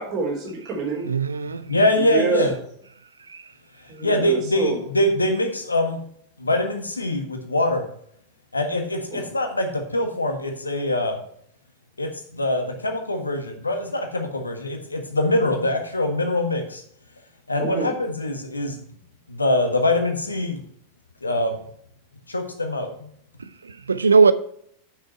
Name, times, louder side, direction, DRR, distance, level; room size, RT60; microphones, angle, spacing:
voice 1, 0.0-1.1 1.9-2.5 3.9-4.8 9.1-9.3 17.6-17.9, right 4 dB, 40° right, 3.5 m, -27 dB
voice 2, 1.1-1.7 3.3-3.4 23.6-24.3, right 5 dB, 75° right, 0.6 m, -19 dB
voice 3, 1.7-2.5 4.0-6.0 6.4-7.9 8.5-11.2 12.0-16.8 17.5-18.8 19.3-20.6 21.2-21.6 22.3-23.1, left 1 dB, 80° left, 1.5 m, -23 dB
8.5 x 6.5 x 4.4 m
figure-of-eight pair, 90°, 0 cm